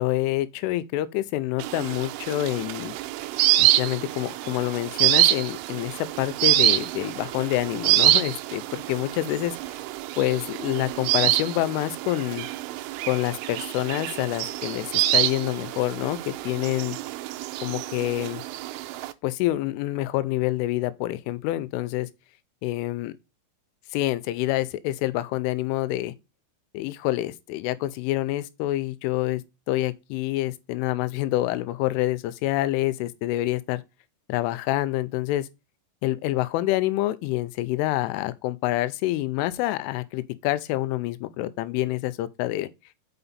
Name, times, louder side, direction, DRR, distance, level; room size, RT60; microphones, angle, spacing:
voice 1, 0.0-2.9 3.6-9.6 10.2-12.5 13.1-17.0 17.6-18.4 19.2-22.1 22.6-23.1 23.9-26.1 26.7-29.4 29.7-33.8 34.3-35.5 36.0-42.7, left 16 dB, 85° left, 3.0 m, -27 dB
sound 1, 1.6-19.1, right 15 dB, 85° right, 3.0 m, -26 dB
6.9 x 5.6 x 4.0 m
omnidirectional pair, 5.8 m